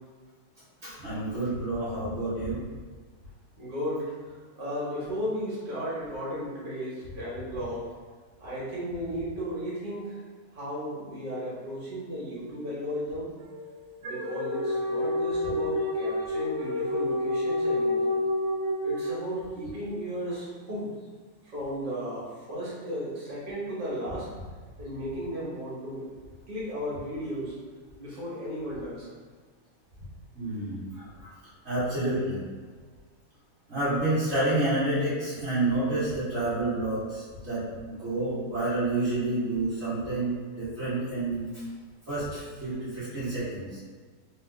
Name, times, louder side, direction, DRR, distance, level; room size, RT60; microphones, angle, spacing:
voice 1, 0.8-2.6 30.4-31.3 31.6-32.4 33.7-37.6 37.9-41.4 42.1-43.8, right 2 dB, 35° right, -11 dB, 1.8 m, -29 dB
voice 2, 3.6-7.9 8.4-10.2 10.5-13.3 14.0-18.1 18.8-20.9 21.4-24.3 24.8-26.1 26.5-27.5 28.0-29.1, equal, 70° right, -8 dB, 1.9 m, -35 dB
sound 1, 13.4-19.7, left 1 dB, 85° right, 0.7 m, -29 dB
4.1 x 2.3 x 3.3 m, 1.5 s
omnidirectional pair, 2.0 m